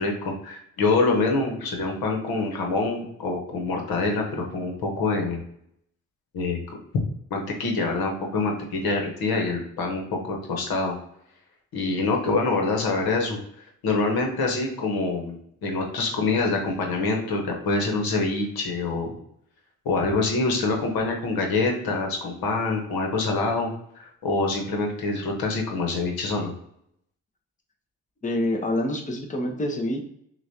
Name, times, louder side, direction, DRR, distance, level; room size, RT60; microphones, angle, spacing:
voice 1, 0.0-5.4 6.3-6.8 7.3-11.0 11.7-13.4 13.8-19.1 19.8-23.7 23.9-26.5, left 3 dB, 70° left, 2 dB, 1.2 m, -25 dB
voice 2, 28.2-30.1, left 1 dB, 20° left, 2 dB, 0.9 m, -26 dB
6.0 x 2.5 x 2.8 m, 0.73 s
supercardioid pair, 55°, 37 cm